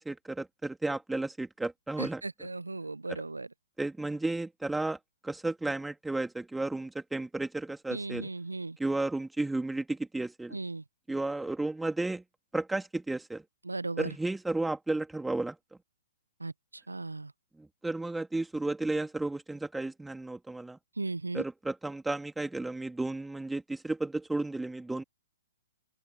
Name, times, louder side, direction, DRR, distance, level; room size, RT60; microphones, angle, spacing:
voice 1, 0.0-2.5 3.1-3.2 3.8-8.3 8.8-10.6 11.1-12.2 12.5-13.4 14.0-15.6 17.6-20.8 21.3-25.0, right 2 dB, 5° right, 3.2 m, -33 dB
voice 2, 2.0-3.5 7.9-8.8 10.5-10.8 13.6-14.1 16.4-17.3 21.0-21.4, right 3 dB, 80° right, 1.0 m, -36 dB
open air
figure-of-eight pair, 120°, 0 cm